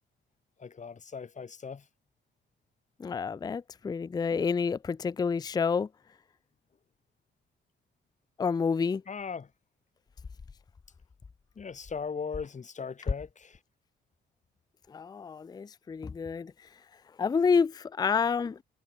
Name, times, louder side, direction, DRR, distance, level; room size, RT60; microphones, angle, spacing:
voice 1, 0.6-1.8 9.1-9.5 11.6-13.6, left 5 dB, 35° left, 2.6 m, -38 dB
voice 2, 3.0-5.9 8.4-9.0 14.9-16.5 17.2-18.6, left 5 dB, 20° left, 0.4 m, -28 dB
cardioid pair, 90°, 20 cm